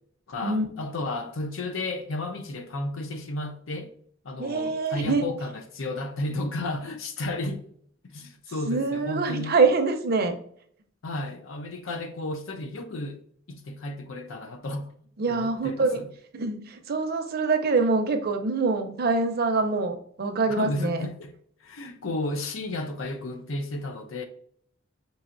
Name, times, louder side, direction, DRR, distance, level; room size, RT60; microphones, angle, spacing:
voice 1, 0.3-3.9 4.2-7.7 8.1-9.5 11.0-13.2 13.5-14.9 15.3-16.1 20.5-21.3 21.6-24.3, left 2 dB, 85° left, 0.6 m, -33 dB
voice 2, 4.4-5.2 8.7-10.3 15.2-16.0 16.3-21.0, right 3 dB, 50° right, 0.5 m, -25 dB
5.4 x 2.8 x 2.5 m
head